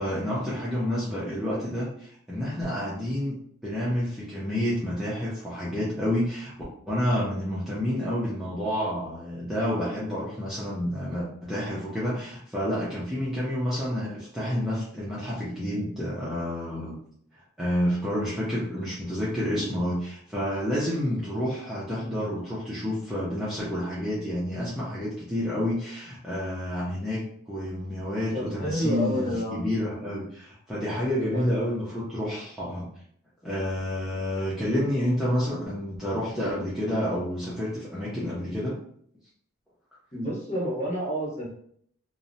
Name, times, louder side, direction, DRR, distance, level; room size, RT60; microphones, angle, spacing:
voice 1, 0.0-3.3 3.6-6.5 6.9-16.9 17.6-32.9 33.4-38.8, left 1 dB, ahead, -10 dB, 0.4 m, -29 dB
voice 2, 28.3-29.6 31.3-31.6 40.1-41.5, equal, 30° left, -6 dB, 1.0 m, -29 dB
2.6 x 2.0 x 2.6 m, 0.64 s
head